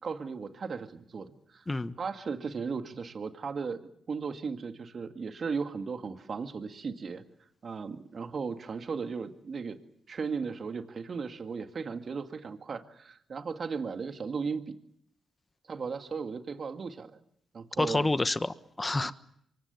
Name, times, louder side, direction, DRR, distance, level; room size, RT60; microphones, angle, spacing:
voice 1, 0.0-1.6 2.0-3.8 4.1-7.2 7.6-9.8 10.1-14.7 15.7-17.2 17.5-18.1, right 5 dB, 55° right, 7 dB, 2.1 m, -36 dB
voice 2, 17.8-19.1, left 2 dB, 25° left, 13 dB, 1.3 m, -28 dB
27.5 x 24.0 x 7.1 m, 0.70 s
hypercardioid pair, 40°, 0 cm